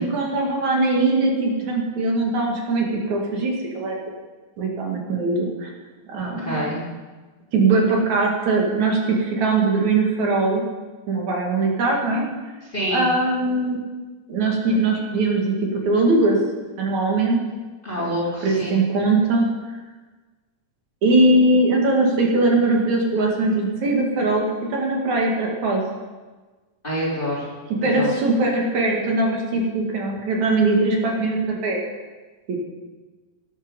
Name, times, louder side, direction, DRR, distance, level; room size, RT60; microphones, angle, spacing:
voice 1, 0.0-4.0 4.6-5.7 6.1-6.9 7.5-10.6 11.1-12.3 12.9-13.8 14.3-16.4 16.8-17.4 18.0-18.1 18.4-19.5 21.0-25.8 27.8-31.8 32.5-32.6, right 2 dB, 55° right, -1 dB, 3.2 m, -21 dB
voice 2, 6.2-6.8 12.7-13.1 17.8-18.7 26.8-27.5 27.9-28.1, equal, 15° left, -7 dB, 3.8 m, -27 dB
12.5 x 11.5 x 5.4 m, 1.3 s
omnidirectional pair, 4.1 m